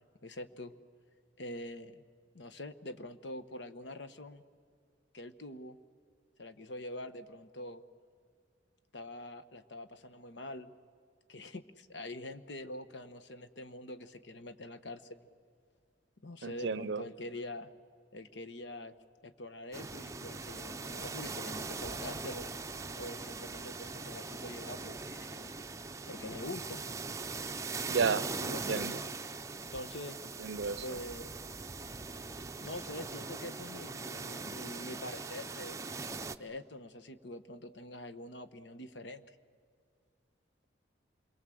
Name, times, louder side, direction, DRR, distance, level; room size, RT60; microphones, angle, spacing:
voice 1, 0.2-0.7 1.4-2.0 2.3-4.4 5.1-5.8 6.4-7.8 8.9-10.7 11.3-15.2 16.2-17.7 18.1-18.9 19.2-22.5 23.0-25.6 26.1-26.9 28.4-29.0 29.7-30.2 30.8-31.3 32.4-35.8 36.4-39.4, left 1 dB, 75° left, 11 dB, 1.1 m, -45 dB
voice 2, 16.4-17.0 27.9-28.2 28.7-29.0 30.4-31.0, right 5 dB, 75° right, 19 dB, 0.5 m, -32 dB
sound 1, 19.7-36.3, right 4 dB, 15° right, 0.6 m, -41 dB
27.5 x 22.5 x 7.8 m, 2.2 s
head